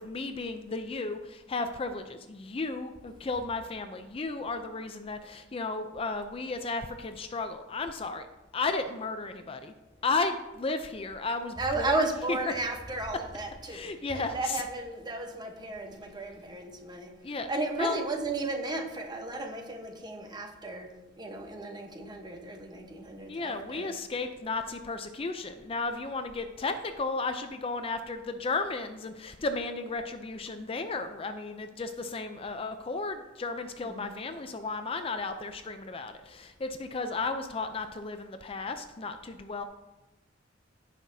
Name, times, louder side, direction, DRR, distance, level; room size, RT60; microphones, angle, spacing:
voice 1, 0.0-8.3 8.5-9.7 10.0-12.4 13.7-14.6 17.2-17.5 17.8-18.0 23.3-39.6, left 3 dB, 30° left, 8 dB, 0.4 m, -34 dB
voice 2, 11.6-17.2 17.5-24.0 33.8-34.2, right 2 dB, 25° right, 4 dB, 1.0 m, -34 dB
16.0 x 5.8 x 2.7 m, 1.1 s
head